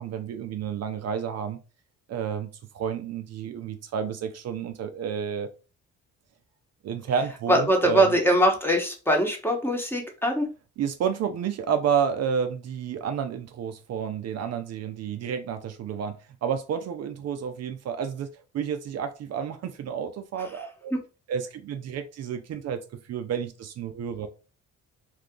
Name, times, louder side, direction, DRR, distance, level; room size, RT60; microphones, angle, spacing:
voice 1, 0.0-1.6 2.1-2.5 2.7-5.5 6.8-8.1 10.8-18.3 18.5-20.9 21.3-22.8 23.1-24.3, right 7 dB, 55° right, 0.5 m, -30 dB
voice 2, 7.5-10.5 20.9-21.0, equal, 5° left, 1.0 m, -22 dB
2.7 x 2.4 x 3.6 m
cardioid pair, 90°, 30 cm